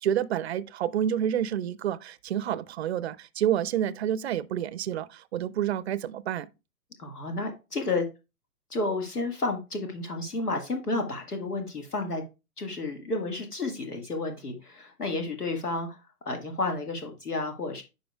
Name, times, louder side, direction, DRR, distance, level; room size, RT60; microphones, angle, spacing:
voice 1, 0.0-6.5, right 10 dB, 45° right, 0.5 m, -29 dB
voice 2, 7.0-8.1 8.7-12.2 12.6-17.8, left 2 dB, 85° left, 1.7 m, -31 dB
10.0 x 5.1 x 2.3 m
figure-of-eight pair, 120°, 45 cm